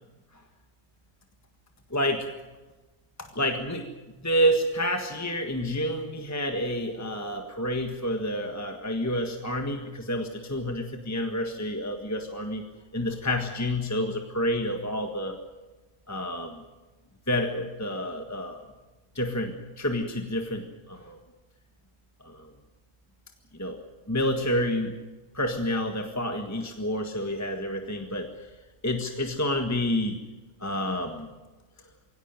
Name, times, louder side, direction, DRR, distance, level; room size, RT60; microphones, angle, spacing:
voice 1, 1.9-2.3 3.2-3.9 4.2-12.7 12.9-15.4 16.1-16.6 17.3-18.6 19.2-21.2 22.2-22.5 23.6-23.8 24.1-25.0 25.3-28.3 28.8-30.2 30.6-31.3, equal, 15° left, 4 dB, 1.6 m, -29 dB
23.5 x 17.5 x 9.3 m, 1.2 s
omnidirectional pair, 1.3 m